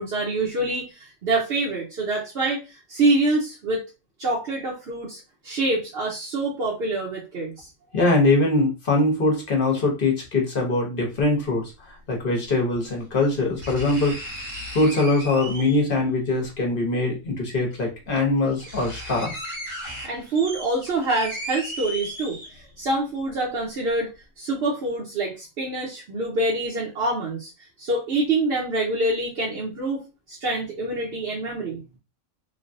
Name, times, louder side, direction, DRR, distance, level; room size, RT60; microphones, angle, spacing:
voice 1, 0.0-3.8 4.2-7.7 20.0-24.1 24.4-27.5 27.8-31.8, right 2 dB, 55° right, -5 dB, 1.0 m, -26 dB
voice 2, 7.9-14.1 14.7-19.4, left 2 dB, 45° left, 0 dB, 1.0 m, -22 dB
sound 1, 11.2-11.3 12.7-12.8 13.6-16.0 17.3-17.4 18.1-18.2 18.4-22.8 23.3-23.4, equal, 75° right, 1.6 m, -36 dB
3.2 x 2.2 x 2.5 m, 0.28 s
omnidirectional pair, 1.4 m